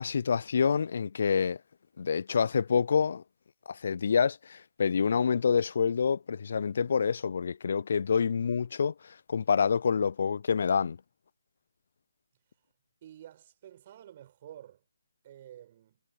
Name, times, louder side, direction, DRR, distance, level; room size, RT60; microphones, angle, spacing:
voice 1, 0.0-1.6 2.0-3.2 3.7-11.0, left 6 dB, 55° left, 0.4 m, -27 dB
voice 2, 13.0-14.8 15.2-16.0, right 11 dB, 35° right, 5.3 m, -50 dB
figure-of-eight pair, 145°, 0 cm